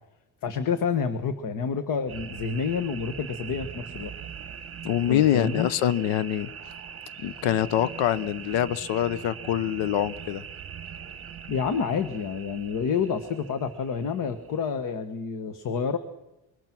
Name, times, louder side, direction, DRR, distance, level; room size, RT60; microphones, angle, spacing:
voice 1, 0.4-4.1 5.1-5.7 11.5-16.0, left 6 dB, 45° left, 10 dB, 1.4 m, -28 dB
sound 1, 2.1-14.7, right 7 dB, 30° right, 1.3 m, -42 dB
voice 2, 4.8-6.5 7.2-10.4, left 11 dB, 85° left, 16 dB, 1.0 m, -25 dB
25.5 x 24.5 x 6.1 m, 0.94 s
cardioid pair, 180°, 44 cm